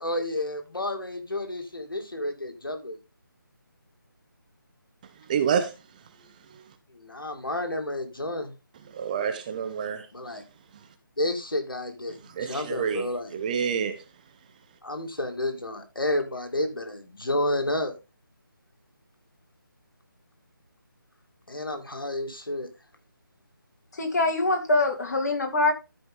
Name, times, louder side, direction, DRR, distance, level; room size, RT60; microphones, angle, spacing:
voice 1, 0.0-3.0 6.9-8.5 10.1-10.4 11.2-13.3 14.8-17.9 21.5-22.7, left 1 dB, 80° left, 2.4 m, -30 dB
voice 2, 5.3-5.7 8.9-10.1 12.3-14.0, right 7 dB, 20° right, 0.9 m, -28 dB
voice 3, 23.9-25.7, left 2 dB, 50° left, 2.6 m, -24 dB
13.0 x 5.2 x 3.7 m
figure-of-eight pair, 155°, 11 cm